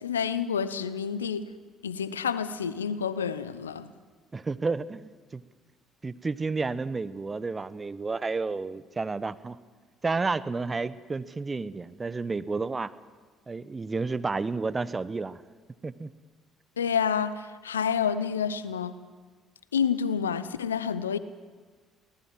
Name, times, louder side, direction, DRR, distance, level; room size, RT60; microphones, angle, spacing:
voice 1, 0.0-1.5 1.8-3.9 16.8-19.0 19.7-21.2, left 7 dB, 90° left, 0.8 m, -29 dB
voice 2, 4.3-5.4 6.0-9.6 10.0-12.9 13.5-15.4 15.8-16.1, right 4 dB, 25° right, 1.0 m, -31 dB
23.5 x 18.5 x 7.6 m
hypercardioid pair, 50°, 0 cm